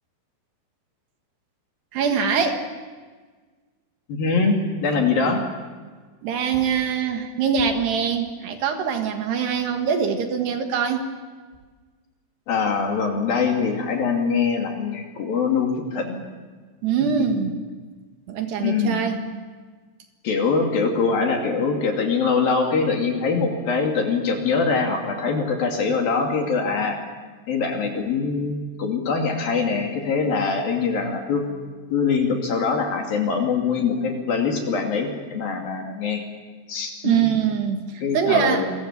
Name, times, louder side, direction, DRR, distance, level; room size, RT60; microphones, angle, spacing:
voice 1, 1.9-2.6 6.2-11.1 16.8-17.6 18.3-19.2 37.0-38.7, right 7 dB, 65° right, 5 dB, 3.6 m, -23 dB
voice 2, 4.1-5.4 12.5-16.2 18.6-19.0 20.2-27.0 27.5-31.4 31.9-36.2 36.7-37.3 38.0-38.7, left 5 dB, 55° left, 2 dB, 4.0 m, -23 dB
28.5 x 23.0 x 7.4 m, 1.4 s
omnidirectional pair, 5.4 m